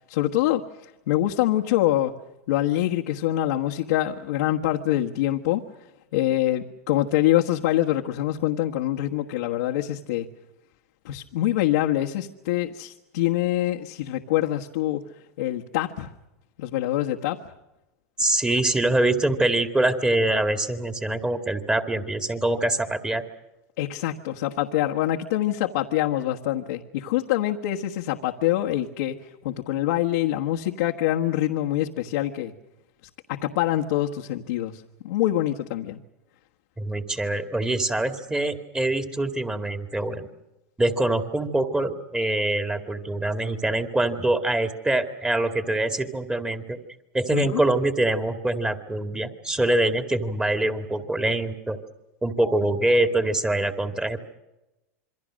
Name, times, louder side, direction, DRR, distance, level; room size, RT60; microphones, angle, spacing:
voice 1, 0.1-2.1 2.5-5.6 6.1-10.3 11.0-15.0 15.4-16.1 16.6-17.4 23.8-29.2 29.4-32.5 33.3-36.0 47.3-47.6, left 13 dB, 75° left, -1 dB, 1.4 m, -25 dB
voice 2, 18.2-23.2 36.8-40.3 40.8-46.8 47.1-51.8 52.2-54.2, right 2 dB, 10° right, 7 dB, 2.2 m, -24 dB
27.5 x 23.5 x 6.4 m, 0.98 s
hypercardioid pair, 110°, 9 cm